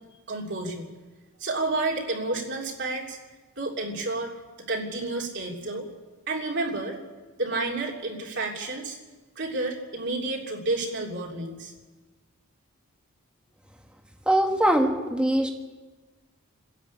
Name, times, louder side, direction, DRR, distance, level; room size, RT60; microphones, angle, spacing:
voice 1, 0.3-0.9 1.4-3.2 3.6-4.3 4.7-5.9 6.3-7.0 7.4-9.0 9.4-11.7, right 2 dB, 55° right, -1 dB, 3.0 m, -30 dB
voice 2, 14.2-15.5, right 1 dB, 5° right, 2 dB, 1.8 m, -22 dB
29.0 x 11.0 x 8.5 m, 1.3 s
head